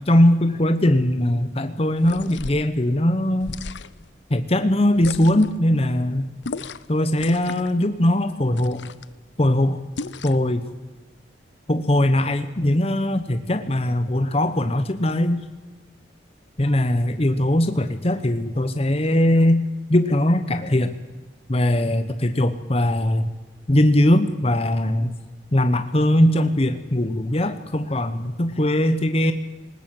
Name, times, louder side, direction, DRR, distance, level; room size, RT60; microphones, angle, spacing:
voice 1, 0.0-3.6 4.3-6.3 6.9-8.9 9.4-9.8 10.2-10.6 11.7-15.4 16.6-20.9 21.5-23.3 23.7-25.1 25.5-29.3, left 1 dB, 30° left, 9 dB, 1.0 m, -20 dB
sound 1, 2.0-2.7 3.4-4.1 5.0-5.6 6.4-6.9 7.2-7.8 8.5-9.1 10.0-10.5, left 4 dB, 70° left, 0.8 m, -35 dB
20.0 x 19.5 x 7.7 m, 1.2 s
head